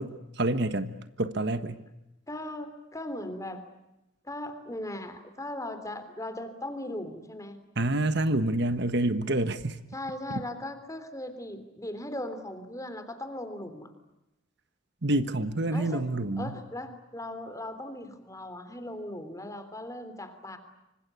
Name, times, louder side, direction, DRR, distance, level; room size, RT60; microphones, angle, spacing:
voice 1, 0.0-1.8 7.8-9.8 10.3-10.4 15.0-16.5, right 2 dB, 55° right, 11 dB, 1.4 m, -28 dB
voice 2, 2.3-3.6 4.2-7.6 9.9-13.9 15.7-16.1 16.4-20.6, left 1 dB, 15° left, 10 dB, 3.3 m, -38 dB
26.5 x 25.5 x 8.3 m, 0.92 s
head